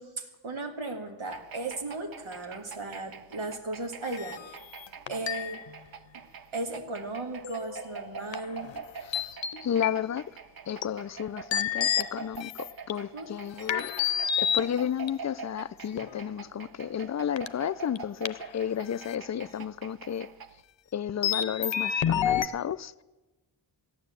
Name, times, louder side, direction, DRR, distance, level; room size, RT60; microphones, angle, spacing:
voice 1, 0.0-4.6 5.1-5.6 6.1-6.2 6.5-8.7 13.1-13.3, right 2 dB, 85° right, 2.0 m, -36 dB
sound 1, 1.3-20.6, right 5 dB, 50° right, 0.7 m, -45 dB
sound 2, 4.0-5.7 7.4-7.9 8.3-8.8 9.1-10.0 10.8-10.9 11.5-12.9 13.7-15.1 16.0-16.3 17.4-17.5 18.0-18.1 18.3-18.4 19.0-19.2 21.2-22.5, left 9 dB, 70° left, 0.7 m, -29 dB
voice 2, 9.0-9.4 9.6-10.2 10.7-13.9 14.4-20.3 20.9-23.0, left 9 dB, 40° left, 0.4 m, -32 dB
14.0 x 9.7 x 8.2 m
wide cardioid pair, 90°, 47 cm